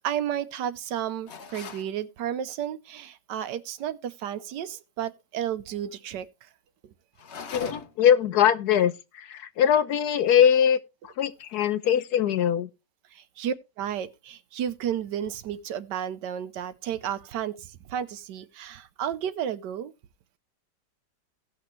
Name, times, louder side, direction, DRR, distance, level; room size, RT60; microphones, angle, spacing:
voice 1, 0.0-6.5 13.1-19.9, right 9 dB, 80° right, 1.4 m, -32 dB
sound 1, 1.3-1.9 7.2-8.1, left 5 dB, 50° left, 0.9 m, -39 dB
voice 2, 7.5-10.8 11.0-12.7, left 9 dB, 70° left, 1.2 m, -22 dB
17.0 x 6.0 x 3.1 m
omnidirectional pair, 1.9 m